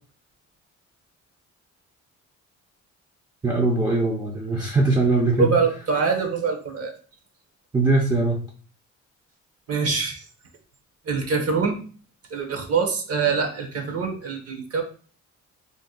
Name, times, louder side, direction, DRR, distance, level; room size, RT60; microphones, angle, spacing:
voice 1, 3.4-5.5 7.7-8.4, right 3 dB, 15° right, -1 dB, 0.5 m, -21 dB
voice 2, 5.4-6.9 9.7-10.2 11.1-11.8 12.3-14.8, right 5 dB, 50° right, 4 dB, 0.8 m, -24 dB
2.6 x 2.1 x 3.7 m, 0.41 s
cardioid pair, 90°, 30 cm